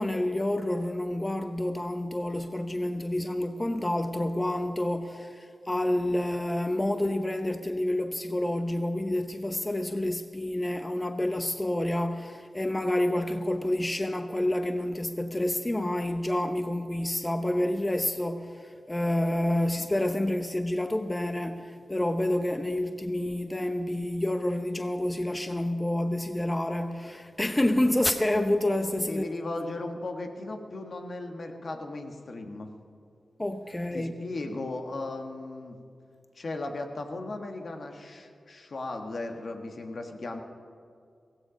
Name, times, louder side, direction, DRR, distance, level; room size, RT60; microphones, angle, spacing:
voice 1, 0.0-29.2 33.4-34.1, left 1 dB, 20° left, 7 dB, 0.9 m, -28 dB
voice 2, 29.1-32.7 33.9-35.8 36.3-40.4, left 2 dB, 65° left, 4 dB, 1.6 m, -36 dB
16.0 x 15.5 x 5.1 m, 2.4 s
cardioid pair, 50°, 0 cm